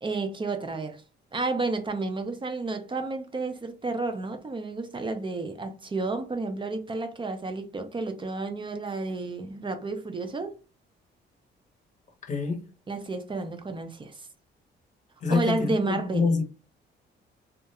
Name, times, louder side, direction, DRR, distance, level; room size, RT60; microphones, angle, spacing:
voice 1, 0.0-1.0 1.3-10.5 12.9-14.2 15.3-16.3, right 3 dB, 25° right, 0.5 m, -31 dB
voice 2, 12.3-12.6 15.2-16.4, left 4 dB, 40° left, 0.8 m, -26 dB
2.3 x 2.1 x 2.8 m
cardioid pair, 90°, 20 cm